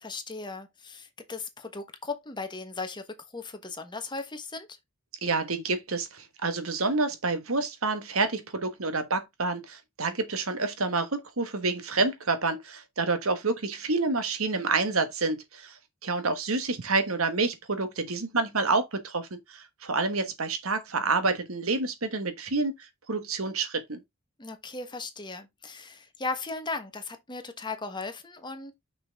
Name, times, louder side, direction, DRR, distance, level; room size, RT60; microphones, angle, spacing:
voice 1, 0.0-3.0 3.3-4.7 24.4-28.7, left 3 dB, 20° left, 1.3 m, -37 dB
voice 2, 5.2-15.8 16.0-22.7 23.1-24.0, right 3 dB, 85° right, 1.4 m, -28 dB
6.2 x 6.0 x 3.5 m
head